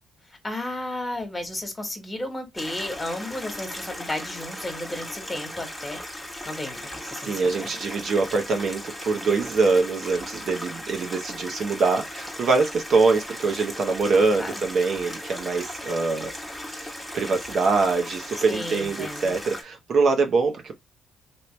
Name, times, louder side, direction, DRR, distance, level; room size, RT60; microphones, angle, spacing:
voice 1, 0.4-6.0 6.4-7.7 14.1-14.6 18.5-19.3, left 1 dB, 20° left, 1.5 m, -33 dB
Stream, 2.6-19.6, left 1 dB, 5° left, 1.2 m, -37 dB
voice 2, 7.2-20.7, right 4 dB, 55° right, 0.9 m, -24 dB
3.1 x 2.8 x 3.1 m
cardioid pair, 90°, 0 cm